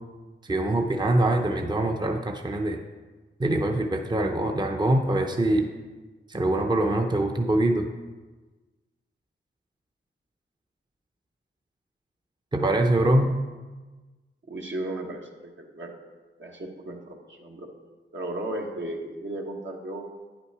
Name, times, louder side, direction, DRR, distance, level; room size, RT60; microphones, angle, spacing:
voice 1, 0.5-2.8 3.4-5.7 6.3-7.9 12.5-13.3, right 1 dB, 20° right, 3 dB, 0.7 m, -23 dB
voice 2, 14.5-15.9 16.4-17.7 18.1-20.0, right 1 dB, 65° right, 0 dB, 1.4 m, -35 dB
9.3 x 5.9 x 4.7 m, 1.3 s
cardioid pair, 55°, 21 cm